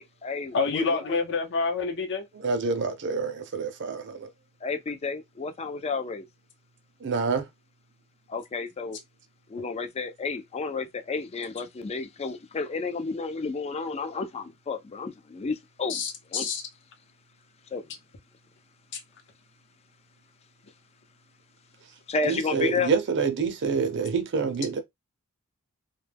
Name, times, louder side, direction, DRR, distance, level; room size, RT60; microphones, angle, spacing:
voice 1, 0.0-0.9 4.6-6.2 8.3-9.0 9.5-16.0 16.3-16.5 17.7-17.8 22.1-22.9, left 4 dB, 30° left, 0.3 m, -31 dB
voice 2, 0.5-2.3 15.9-16.6 18.9-19.0, left 4 dB, 55° left, 0.7 m, -27 dB
voice 3, 2.3-4.3 7.0-7.5 22.2-24.8, right 5 dB, 55° right, 0.6 m, -27 dB
2.2 x 2.2 x 3.3 m
head